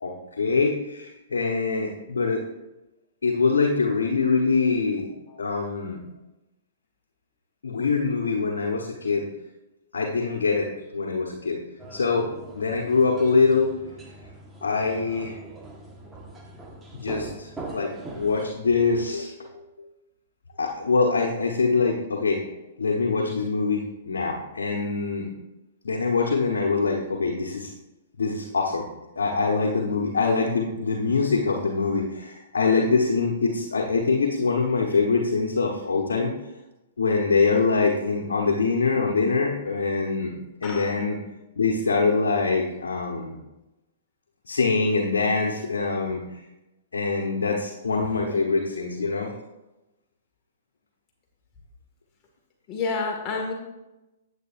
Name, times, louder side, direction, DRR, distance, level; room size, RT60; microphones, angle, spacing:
voice 1, 0.0-2.4 3.2-5.1 5.4-6.0 7.6-9.3 9.9-11.6 11.9-13.7 14.6-15.4 16.9-19.9 20.6-22.4 22.8-25.3 25.8-27.7 28.2-28.8 29.1-36.3 37.0-40.3 40.6-41.2 41.6-43.4 44.5-46.4 46.9-49.3, left 4 dB, 85° left, 0 dB, 1.2 m, -24 dB
sound 1, 11.8-18.5, right 2 dB, 15° right, 1.4 m, -41 dB
voice 2, 52.7-53.5, left 4 dB, 30° left, 0 dB, 1.9 m, -29 dB
9.5 x 8.8 x 2.6 m, 0.98 s
hypercardioid pair, 125°, 0 cm